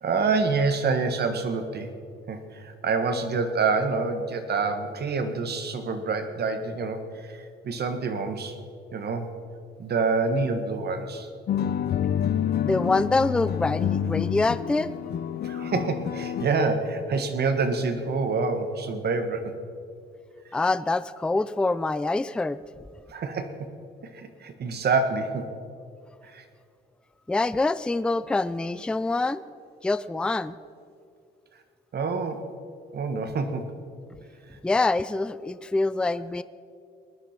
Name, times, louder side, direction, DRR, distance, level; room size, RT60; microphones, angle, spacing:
voice 1, 0.0-1.9 2.3-8.6 8.9-9.3 9.8-11.3 15.4-19.5 23.1-23.7 24.0-25.5 26.2-26.4 31.9-32.5 32.9-33.7, right 4 dB, 55° right, 8 dB, 1.5 m, -27 dB
sound 1, 11.5-16.5, left 9 dB, 55° left, 0.6 m, -28 dB
voice 2, 12.6-14.9 20.5-22.6 27.3-29.4 29.8-30.6 34.6-36.4, left 3 dB, 5° left, 15 dB, 0.4 m, -25 dB
19.5 x 10.0 x 5.9 m, 2.3 s
cardioid pair, 90°, 20 cm